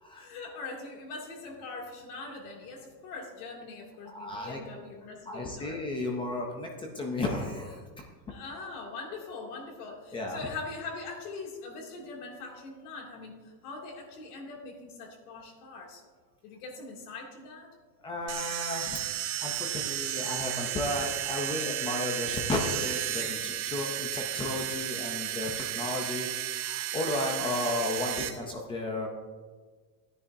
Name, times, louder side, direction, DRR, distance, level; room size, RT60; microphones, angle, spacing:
voice 1, 0.1-5.8 8.3-16.0 16.4-17.7, left 3 dB, 70° left, 0 dB, 2.5 m, -42 dB
voice 2, 4.1-4.6 5.3-7.8 10.1-10.4 18.0-19.0 19.4-29.1, left 2 dB, 10° left, 1 dB, 0.4 m, -33 dB
sound 1, 18.3-28.3, right 12 dB, 60° right, 1.2 m, -33 dB
14.5 x 9.9 x 2.6 m, 1.4 s
supercardioid pair, 160°, 48 cm